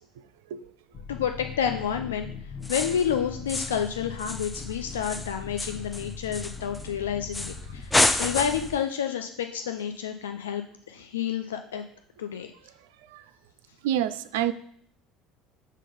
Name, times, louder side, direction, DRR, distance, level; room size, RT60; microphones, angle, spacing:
sound 1, 0.9-8.8, left 5 dB, 40° left, 0.9 m, -40 dB
voice 1, 1.1-2.3 2.7-10.6 10.9-11.8 12.2-12.5, left 8 dB, 75° left, 6 dB, 0.4 m, -29 dB
sound 2, 2.6-3.1 3.5-3.9 4.2-6.9 7.3-7.6 7.9-8.8, left 2 dB, 15° left, 0.5 m, -28 dB
voice 2, 13.8-14.5, right 11 dB, 65° right, 11 dB, 0.3 m, -26 dB
6.4 x 3.8 x 5.1 m, 0.62 s
figure-of-eight pair, 65°, 0 cm